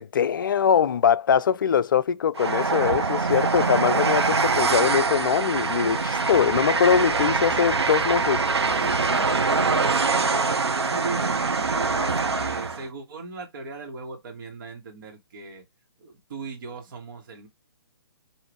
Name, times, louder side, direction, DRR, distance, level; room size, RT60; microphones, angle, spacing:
voice 1, 0.0-8.4, left 7 dB, 50° left, 0.4 m, -22 dB
Train, 2.4-12.9, right 4 dB, 70° right, 0.7 m, -24 dB
voice 2, 8.8-15.6 16.0-17.5, right 4 dB, 50° right, 1.4 m, -38 dB
4.9 x 2.6 x 3.4 m
figure-of-eight pair, 130°, 14 cm